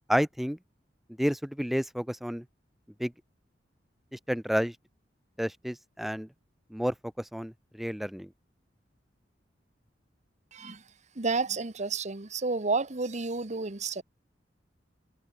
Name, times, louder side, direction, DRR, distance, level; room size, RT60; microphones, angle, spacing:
voice 1, 0.1-0.6 1.2-2.4 3.0-3.1 4.1-4.7 5.4-6.3 6.7-6.9 7.3-7.5 7.8-8.3, equal, ahead, 0.5 m, -30 dB
voice 2, 10.5-10.8 11.2-14.0, right 4 dB, 40° right, 1.3 m, -31 dB
head